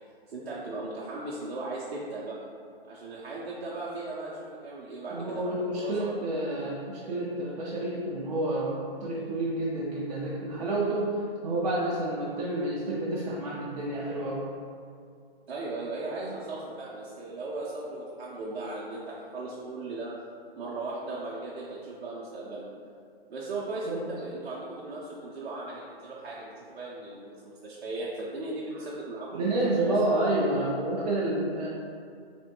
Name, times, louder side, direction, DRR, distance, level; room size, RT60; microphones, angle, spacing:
voice 1, 0.3-2.4 2.9-5.4 5.8-6.5 15.5-20.1 20.6-22.6 23.3-29.5 29.8-30.0, right 2 dB, 85° right, -7 dB, 0.6 m, -37 dB
voice 2, 5.1-14.4 23.9-24.0 29.3-31.7, right 1 dB, 45° right, -7 dB, 0.4 m, -29 dB
3.3 x 2.1 x 2.9 m, 2.2 s
hypercardioid pair, 150°, 31 cm